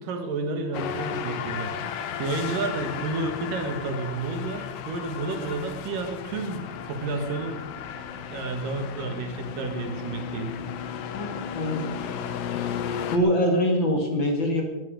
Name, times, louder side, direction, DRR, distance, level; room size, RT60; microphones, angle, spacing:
voice 1, 0.0-7.6 8.3-10.6, right 3 dB, 75° right, 5 dB, 3.4 m, -31 dB
sound 1, 0.7-13.2, left 8 dB, 85° left, 2.7 m, -34 dB
voice 2, 11.1-12.7 13.1-14.6, equal, 40° left, 2 dB, 2.4 m, -25 dB
18.5 x 12.5 x 5.3 m, 1.1 s
omnidirectional pair, 3.9 m